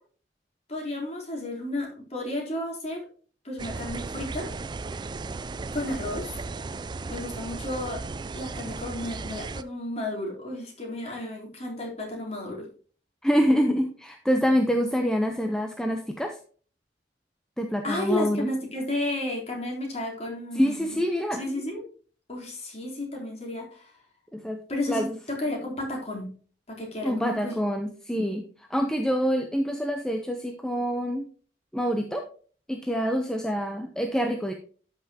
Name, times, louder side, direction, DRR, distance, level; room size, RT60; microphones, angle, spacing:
voice 1, 0.7-3.0 3.4-4.5 5.7-6.4 7.1-8.0 8.3-12.7 17.8-21.0 21.4-21.8 22.3-23.9 24.7-26.3 26.7-27.5, left 1 dB, 40° left, -2 dB, 3.6 m, -32 dB
sound 1, 3.6-9.6, right 3 dB, 25° right, 0.3 m, -36 dB
voice 2, 13.2-16.4 17.6-18.5 20.5-21.4 24.3-24.6 24.9-25.2 27.0-31.3 31.7-32.2 32.7-34.5, equal, 5° left, 4 dB, 0.7 m, -26 dB
12.5 x 5.8 x 2.9 m, 0.41 s
head